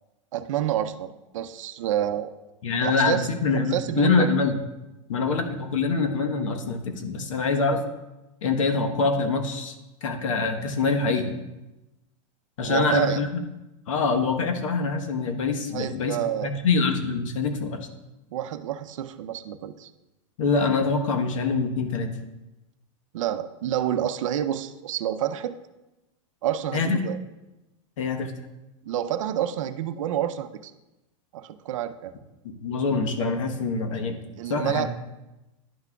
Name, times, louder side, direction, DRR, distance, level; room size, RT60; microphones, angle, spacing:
voice 1, 0.3-2.3 2.8-3.3 3.7-4.3 12.6-13.2 15.7-16.5 18.3-19.9 23.1-25.6 26.4-27.2 28.8-30.7 31.3-32.1 34.4-34.9, right 11 dB, 80° right, 11 dB, 0.5 m, -28 dB
voice 2, 2.6-4.6 5.1-7.8 8.4-9.7 10.0-11.4 12.6-13.4 13.9-16.2 16.4-17.9 20.4-22.1 26.7-27.0 28.0-28.3 32.6-34.2 34.5-34.9, left 4 dB, 80° left, 6 dB, 1.1 m, -25 dB
11.0 x 6.0 x 2.3 m, 1.0 s
supercardioid pair, 165°, 16 cm